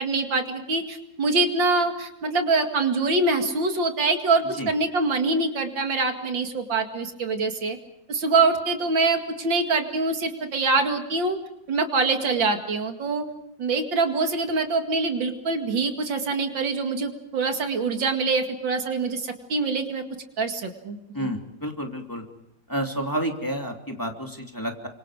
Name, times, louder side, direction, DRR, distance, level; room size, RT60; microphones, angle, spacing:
voice 1, 0.0-7.8 8.1-11.4 11.7-13.3 13.6-20.0 20.4-21.3, right 3 dB, 80° right, 5 dB, 2.9 m, -24 dB
voice 2, 21.1-22.2 22.7-24.9, equal, 10° left, 2 dB, 2.8 m, -30 dB
30.0 x 25.5 x 4.9 m, 0.84 s
omnidirectional pair, 2.0 m